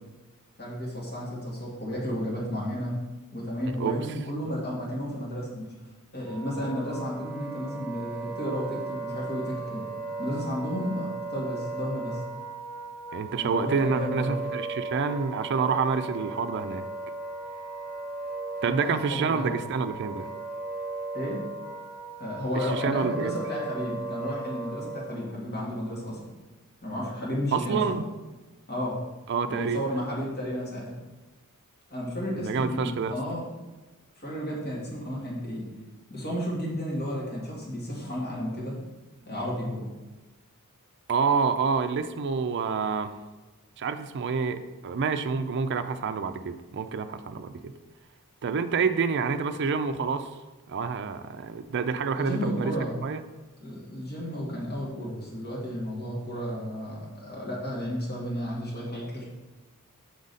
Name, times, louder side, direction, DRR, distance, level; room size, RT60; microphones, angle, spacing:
voice 1, 0.6-3.0 3.3-5.7 6.1-9.8 10.2-12.2 13.4-14.4 18.6-19.6 21.1-21.4 22.2-26.2 26.8-28.0 28.7-28.9 29.5-31.0 31.9-33.5 34.2-35.7 36.1-38.8 39.3-39.8 52.1-53.0 53.6-59.2, equal, 45° left, -5 dB, 2.0 m, -32 dB
Wind instrument woodwind instrument, 6.2-25.3, right 3 dB, ahead, 0.9 m, -37 dB
voice 2, 13.1-16.8 18.6-20.3 22.5-23.3 27.5-28.0 29.3-29.8 32.4-33.1 41.1-43.1 43.8-47.7 48.4-50.3 50.7-52.7 53.0-53.2, right 5 dB, 50° right, 10 dB, 0.4 m, -28 dB
6.4 x 5.0 x 4.0 m, 1.2 s
head